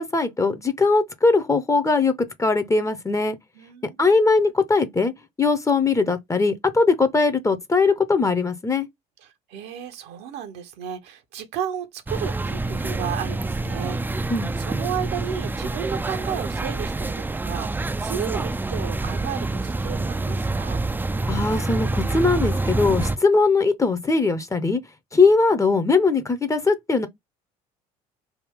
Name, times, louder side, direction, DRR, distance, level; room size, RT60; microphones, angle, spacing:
voice 1, 0.0-2.1 2.4-3.4 4.0-5.1 5.4-8.9 14.3-14.5 21.3-24.8 25.1-27.1, left 4 dB, 15° left, 0.7 m, -20 dB
voice 2, 3.5-4.2 9.2-20.8, right 8 dB, 60° right, 0.9 m, -33 dB
sound 1, 12.1-23.2, right 2 dB, 10° right, 0.4 m, -27 dB
3.4 x 2.2 x 3.5 m
hypercardioid pair, 65°, 19 cm